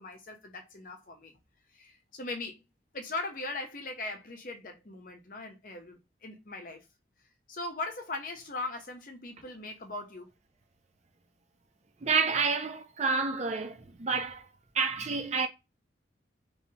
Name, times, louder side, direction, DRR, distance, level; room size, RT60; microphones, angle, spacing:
voice 1, 0.0-1.3 1.7-2.6 2.9-6.8 7.5-10.3, left 2 dB, 45° left, 0.8 m, -39 dB
voice 2, 12.0-14.5 14.7-15.5, right 4 dB, 35° right, 0.5 m, -29 dB
3.2 x 3.0 x 2.8 m
head